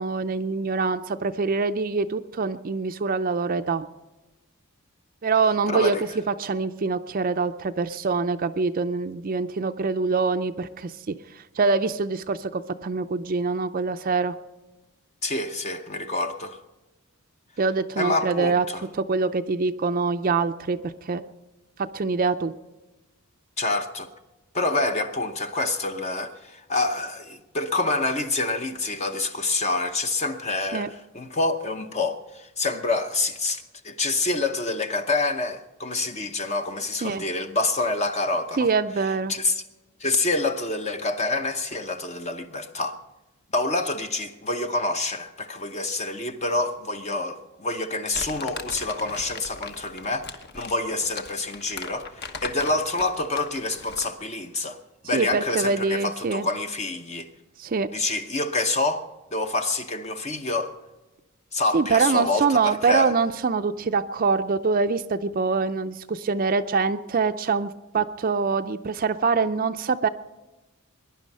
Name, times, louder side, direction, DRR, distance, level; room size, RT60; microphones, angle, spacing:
voice 1, 0.0-3.9 5.2-14.3 17.6-18.6 19.0-21.2 21.8-22.5 30.7-30.9 37.0-37.2 38.6-39.3 55.1-56.5 57.6-57.9 61.7-70.1, right 4 dB, 40° right, 0.5 m, -24 dB
voice 2, 5.7-6.0 15.2-16.6 18.0-18.8 23.6-24.1 24.5-38.7 39.3-39.6 40.0-43.0 43.5-54.8 55.0-57.3 57.9-60.7 61.5-63.1, left 2 dB, 30° left, 0.8 m, -27 dB
Crumpling crinkling, 48.1-54.2, left 4 dB, 50° left, 1.2 m, -38 dB
21.5 x 10.5 x 5.4 m
head